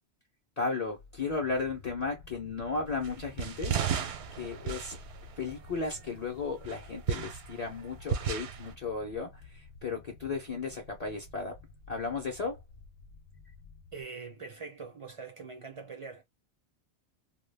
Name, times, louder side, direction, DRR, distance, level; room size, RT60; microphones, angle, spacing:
voice 1, 0.6-5.0 5.4-11.6 11.9-12.6, left 4 dB, 45° left, 0.6 m, -35 dB
sound 1, 0.8-14.0, left 4 dB, 75° left, 0.8 m, -52 dB
sound 2, 3.0-6.1 6.6-8.7, right 8 dB, 80° right, 0.8 m, -34 dB
voice 2, 13.9-16.2, right 4 dB, 40° right, 0.5 m, -43 dB
2.2 x 2.2 x 3.2 m
omnidirectional pair, 1.1 m